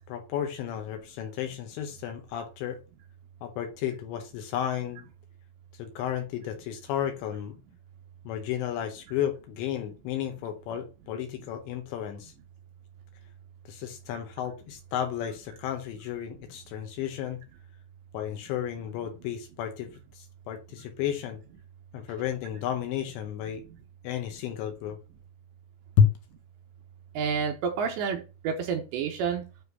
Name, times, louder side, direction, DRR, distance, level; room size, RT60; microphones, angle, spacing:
voice 1, 0.1-2.8 3.4-5.0 5.7-7.6 8.3-12.3 13.7-17.4 18.1-21.4 21.9-23.6 24.0-25.0 26.0-26.1, left 9 dB, 75° left, 6 dB, 2.8 m, -32 dB
voice 2, 27.2-29.4, right 6 dB, 75° right, 4 dB, 2.7 m, -29 dB
9.5 x 3.3 x 5.5 m, 0.31 s
omnidirectional pair, 5.9 m